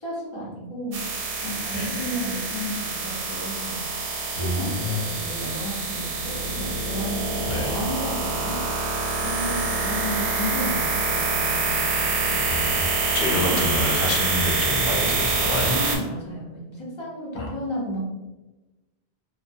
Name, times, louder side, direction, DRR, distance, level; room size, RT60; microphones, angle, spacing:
voice 1, 0.0-8.6 9.2-12.5 13.3-13.6 15.6-18.0, equal, 35° left, -4 dB, 0.6 m, -33 dB
sound 1, 0.9-16.0, right 3 dB, 65° right, 0.7 m, -26 dB
voice 2, 1.7-2.1 4.4-5.0 7.5-7.9 12.4-12.9 13.1-15.8 17.3-17.5, left 2 dB, 70° left, 0 dB, 0.8 m, -27 dB
2.5 x 2.1 x 2.5 m, 1.1 s
omnidirectional pair, 1.1 m